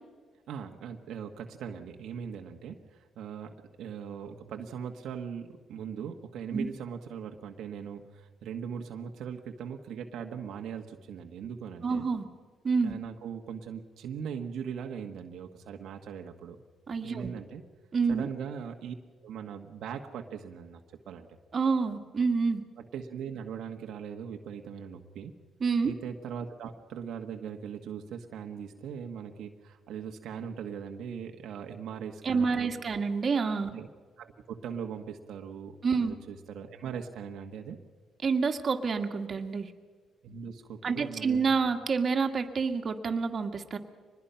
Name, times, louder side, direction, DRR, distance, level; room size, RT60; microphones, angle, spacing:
voice 1, 0.5-12.0 12.8-16.6 17.0-17.6 18.1-18.9 19.2-21.3 22.8-25.3 25.8-32.8 33.7-33.9 34.2-37.8 40.2-41.5, right 7 dB, 75° right, 4 dB, 1.5 m, -40 dB
voice 2, 11.8-12.2 12.6-12.9 16.9-17.3 17.9-18.3 21.5-22.6 25.6-25.9 32.2-33.7 35.8-36.1 38.2-39.7 40.8-43.8, right 5 dB, 45° right, 5 dB, 2.0 m, -28 dB
24.5 x 20.5 x 5.7 m, 1.5 s
cardioid pair, 90°, 0 cm